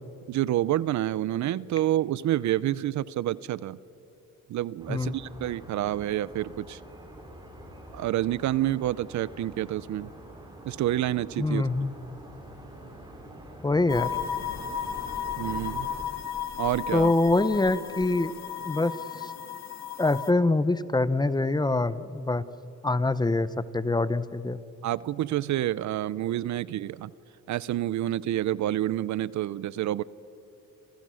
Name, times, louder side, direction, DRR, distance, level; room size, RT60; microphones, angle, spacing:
voice 1, 0.3-3.8 4.5-6.8 7.9-10.1 10.6-11.6 15.4-15.9 16.6-17.1 24.8-27.1 27.5-30.0, right 13 dB, 60° right, 20 dB, 0.6 m, -28 dB
sound 1, 4.8-16.0, right 1 dB, 15° right, 6.7 m, -46 dB
voice 2, 11.4-11.9 13.6-14.1 16.9-18.3 18.6-19.3 20.0-22.4 22.8-24.6, left 2 dB, 15° left, 15 dB, 0.8 m, -25 dB
sound 2, 13.9-20.3, left 8 dB, 55° left, 1.8 m, -34 dB
30.0 x 28.0 x 6.3 m, 2.9 s
cardioid pair, 120°, 32 cm